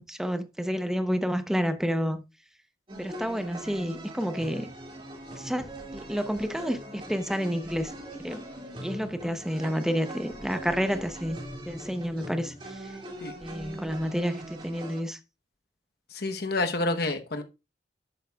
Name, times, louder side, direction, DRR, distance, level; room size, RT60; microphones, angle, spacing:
voice 1, 0.0-2.2 3.0-4.7 5.4-7.9 8.2-8.4 8.8-11.4 11.7-12.9 13.4-15.2, equal, 5° right, 0.8 m, -30 dB
sound 1, 2.9-15.0, right 1 dB, 30° right, 2.4 m, -41 dB
voice 2, 16.1-17.4, left 2 dB, 60° left, 1.0 m, -29 dB
11.5 x 8.2 x 2.3 m
head